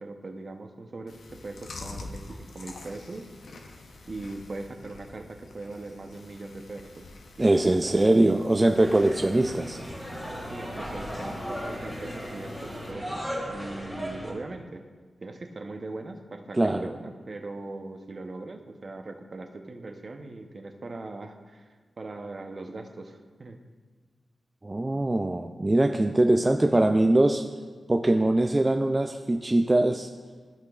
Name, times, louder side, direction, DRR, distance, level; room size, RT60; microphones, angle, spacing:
voice 1, 0.0-3.3 4.1-7.1 7.5-8.2 10.5-13.2 13.5-14.8 15.2-23.6, right 2 dB, 45° right, 4 dB, 0.7 m, -40 dB
Chewing mastication, 1.1-12.9, left 3 dB, 75° left, 0.7 m, -47 dB
voice 2, 7.4-9.8 16.5-16.9 24.6-27.4 27.9-30.1, right 1 dB, 25° right, 5 dB, 0.3 m, -22 dB
sound 1, 8.8-14.3, equal, 10° left, 1.9 m, -36 dB
14.0 x 5.8 x 2.4 m, 1.5 s
wide cardioid pair, 85°, 0 cm